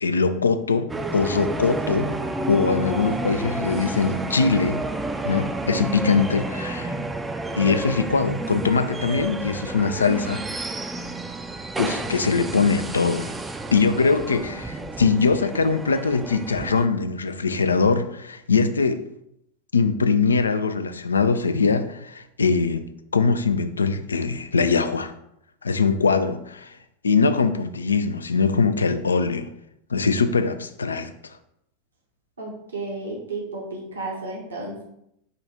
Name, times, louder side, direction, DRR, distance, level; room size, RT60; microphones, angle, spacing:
voice 1, 0.0-2.1 2.5-4.8 5.2-6.9 7.6-10.4 11.8-13.3 13.7-19.0 19.7-25.1 25.6-26.8 27.0-29.5 29.9-31.1, left 4 dB, 80° left, 9 dB, 0.3 m, -22 dB
sound 1, 0.9-16.9, right 2 dB, 15° right, 0.4 m, -30 dB
voice 2, 13.7-14.4 32.4-34.8, right 2 dB, 80° right, -2 dB, 1.1 m, -34 dB
5.0 x 2.4 x 4.2 m, 0.77 s
figure-of-eight pair, 90°, 0 cm